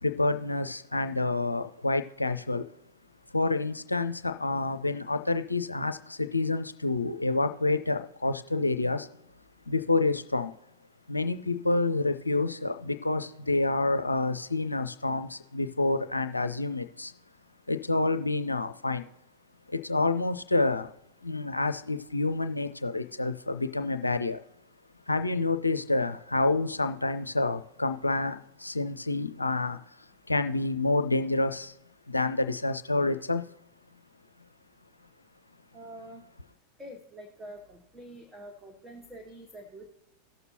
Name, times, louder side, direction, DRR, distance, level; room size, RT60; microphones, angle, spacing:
voice 1, 0.0-2.6 3.3-9.1 9.7-10.5 11.1-17.1 17.7-19.1 19.7-20.9 21.2-24.4 25.1-29.8 30.3-31.7 32.1-33.5, left 2 dB, 80° left, 0.5 m, -28 dB
voice 2, 35.7-36.2 36.8-39.9, right 1 dB, 15° right, 1.1 m, -46 dB
17.5 x 6.8 x 2.8 m
figure-of-eight pair, 90°, 0 cm